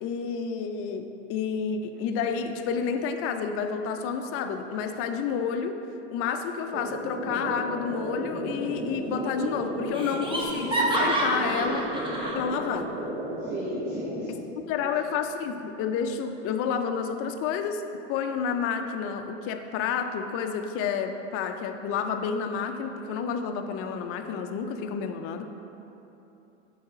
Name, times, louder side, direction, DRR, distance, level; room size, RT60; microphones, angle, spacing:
voice 1, 0.0-5.8 6.1-11.8 12.3-12.9 14.3-14.4 14.7-17.8 18.1-25.4, left 6 dB, 40° left, 6 dB, 0.5 m, -30 dB
sound 1, 6.7-14.2, equal, 35° right, 1.1 m, -34 dB
Laughter, 8.6-9.2 9.4-9.5 9.9-12.4, right 1 dB, 15° right, 0.9 m, -28 dB
voice 2, 11.2-11.9 13.4-14.5 14.8-15.1, right 1 dB, 65° right, -7 dB, 1.2 m, -38 dB
6.3 x 4.8 x 3.6 m, 3.0 s
hypercardioid pair, 110°, 35 cm